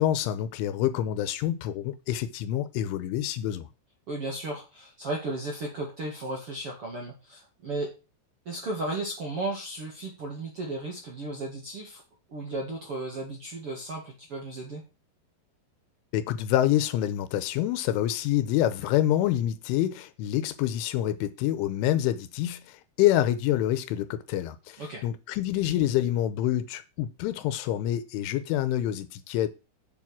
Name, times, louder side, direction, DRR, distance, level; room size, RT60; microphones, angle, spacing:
voice 1, 0.0-3.7 16.1-29.5, left 12 dB, 80° left, 3.2 m, -27 dB
voice 2, 4.1-7.9 8.5-12.0 12.3-14.8 24.8-25.0, right 2 dB, 45° right, 1.8 m, -34 dB
7.8 x 7.3 x 6.0 m
omnidirectional pair, 5.7 m